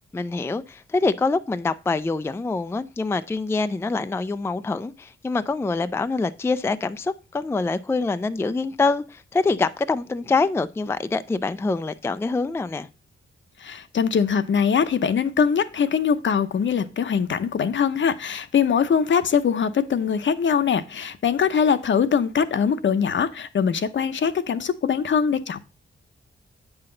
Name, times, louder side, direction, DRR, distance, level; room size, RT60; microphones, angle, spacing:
voice 1, 0.1-12.9, left 3 dB, 10° left, 0.4 m, -25 dB
voice 2, 13.6-25.6, left 7 dB, 60° left, 0.8 m, -22 dB
8.7 x 5.8 x 3.8 m
wide cardioid pair, 145°, 21 cm